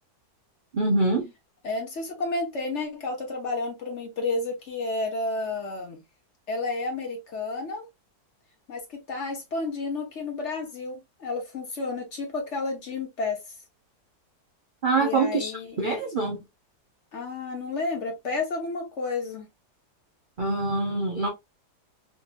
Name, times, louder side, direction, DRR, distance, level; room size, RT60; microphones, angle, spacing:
voice 1, 0.7-1.3 14.8-15.5 15.8-16.4 20.4-21.3, right 3 dB, 60° right, 0.5 m, -24 dB
voice 2, 1.6-6.0 6.5-7.9 8.7-13.4 15.0-15.8 17.1-19.5, left 3 dB, 50° left, 1.3 m, -31 dB
3.6 x 2.7 x 2.5 m
omnidirectional pair, 1.8 m